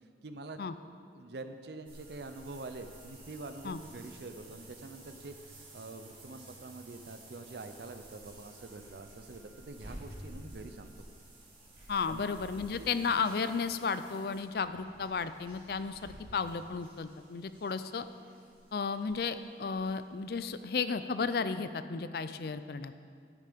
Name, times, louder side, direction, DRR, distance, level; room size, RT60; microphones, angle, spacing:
voice 1, 0.2-0.7 1.1-10.9 12.1-12.3 12.8-12.9, right 2 dB, 70° right, 8 dB, 0.6 m, -45 dB
sound 1, 1.9-20.5 20.8-20.9 21.4-21.5, right 1 dB, 30° right, 2.1 m, -53 dB
voice 2, 11.9-18.0 18.7-22.9, left 5 dB, 60° left, 12 dB, 0.4 m, -33 dB
9.9 x 8.3 x 5.2 m, 2.2 s
head